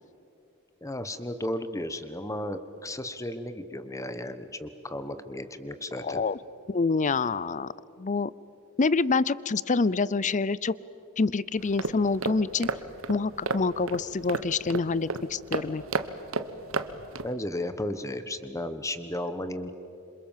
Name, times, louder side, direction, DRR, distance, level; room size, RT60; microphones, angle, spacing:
voice 1, 0.8-6.2 17.2-19.7, left 1 dB, 15° left, 11 dB, 1.3 m, -34 dB
voice 2, 6.0-6.4 6.7-7.7 8.0-8.3 8.8-10.7 11.2-12.7 13.1-15.8, left 4 dB, 35° left, 20 dB, 0.6 m, -26 dB
sound 1, 11.6-17.3, right 3 dB, 70° right, 1.1 m, -33 dB
27.0 x 27.0 x 7.5 m, 2.8 s
head